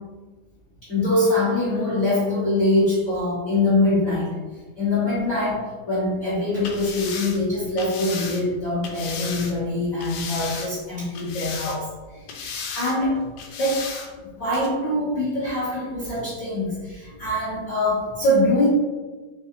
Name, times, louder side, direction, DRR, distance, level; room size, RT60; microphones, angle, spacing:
voice 1, 0.8-4.3 4.8-12.3 12.7-13.3 13.6-14.1 14.4-18.7, left 1 dB, 45° left, -10 dB, 1.1 m, -23 dB
sound 1, 6.6-9.6 10.0-10.9 11.2-12.0 12.3-13.0 13.4-14.1 14.5-14.7, left 6 dB, 80° left, 1.9 m, -34 dB
4.8 x 3.3 x 2.8 m, 1.3 s
omnidirectional pair, 3.6 m